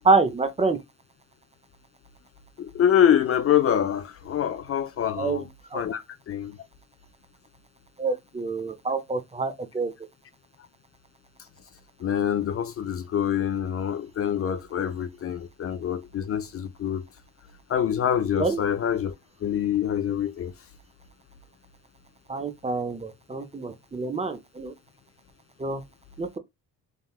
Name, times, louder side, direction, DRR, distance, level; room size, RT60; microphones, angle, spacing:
voice 1, 0.0-0.8 5.2-5.8 8.0-9.9 18.4-18.6 22.3-24.7 25.6-25.8 26.2-26.4, right 3 dB, 20° right, 0.5 m, -26 dB
voice 2, 2.6-5.4 5.7-6.6 12.0-17.0 17.7-19.1 19.4-20.5, left 9 dB, 40° left, 0.4 m, -25 dB
3.6 x 2.1 x 2.3 m
cardioid pair, 85°, 34 cm